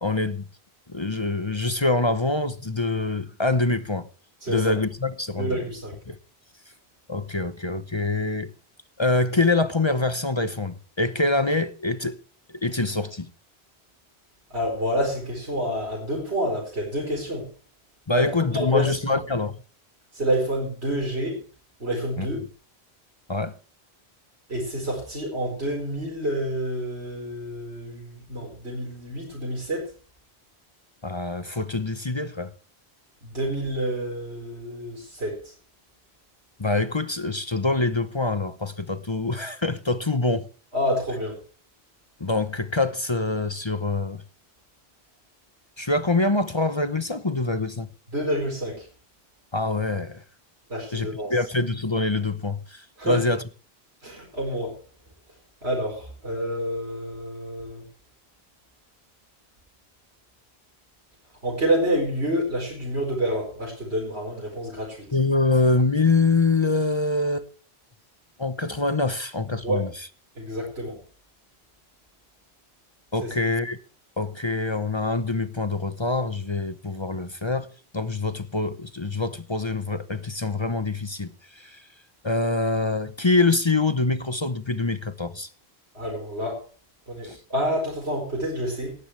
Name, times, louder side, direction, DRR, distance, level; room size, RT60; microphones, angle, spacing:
voice 1, 0.0-0.4 0.9-4.1 4.5-5.7 6.1-6.2 7.1-8.5 9.0-12.2 12.6-13.3 18.1-19.6 22.2-22.3 23.3-23.5 31.0-32.5 36.6-40.5 42.2-44.2 45.8-47.9 49.5-50.2 50.9-53.4 65.1-67.5 68.4-70.1 73.1-73.8 74.2-77.7 77.9-81.8 82.2-85.5 87.2-87.4, left 3 dB, 30° left, 0.9 m, -25 dB
voice 2, 4.4-4.7 5.4-6.0 14.5-17.5 18.1-19.2 20.1-21.4 21.8-22.4 24.5-29.9 33.2-35.4 40.7-41.4 48.1-48.9 50.7-51.3 53.0-53.2 54.0-54.8 55.6-57.8 61.4-65.1 69.6-69.8 70.4-71.0 73.2-73.3 85.9-86.6 87.1-89.0, equal, 85° right, 5.0 m, -28 dB
18.0 x 13.5 x 3.3 m
omnidirectional pair, 1.1 m